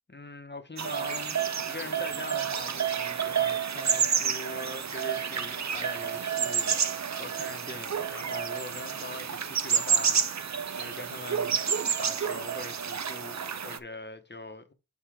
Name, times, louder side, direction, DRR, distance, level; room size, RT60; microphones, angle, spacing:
voice 1, 0.1-11.6 12.0-14.7, left 2 dB, 30° left, 1.1 m, -42 dB
sound 1, 0.8-13.8, right 7 dB, 50° right, 0.5 m, -29 dB
5.9 x 3.9 x 4.9 m
wide cardioid pair, 60°, 38 cm